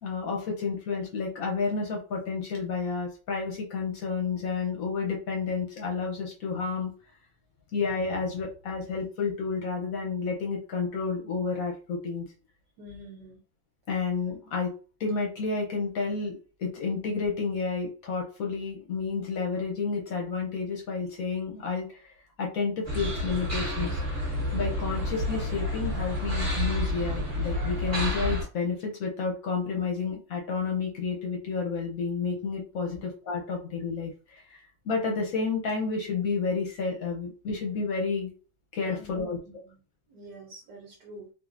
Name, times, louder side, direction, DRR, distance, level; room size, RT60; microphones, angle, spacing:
voice 1, 0.0-6.9 7.7-12.3 13.9-14.7 15.0-22.1 22.4-24.0 24.5-34.6 34.8-38.3 38.7-39.6, left 4 dB, 65° left, 0 dB, 1.0 m, -30 dB
voice 2, 12.8-13.4 32.9-33.0 38.9-39.8 40.1-41.3, equal, 70° right, -1 dB, 1.3 m, -46 dB
sound 1, 22.8-28.4, left 1 dB, 10° right, 1.3 m, -29 dB
3.6 x 2.5 x 2.4 m, 0.38 s
omnidirectional pair, 2.0 m